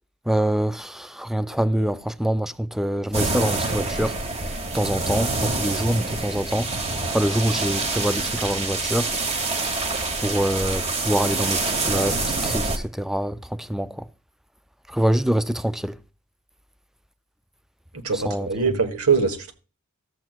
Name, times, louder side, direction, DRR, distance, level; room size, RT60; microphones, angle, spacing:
voice 1, 0.3-4.2 4.7-6.7 7.1-9.1 10.2-14.0 14.9-15.9 18.3-18.5, equal, ahead, 0.3 m, -25 dB
sound 1, 3.1-12.8, right 3 dB, 30° right, 1.2 m, -26 dB
voice 2, 17.9-19.5, right 5 dB, 75° right, 1.4 m, -23 dB
14.0 x 7.6 x 2.4 m
head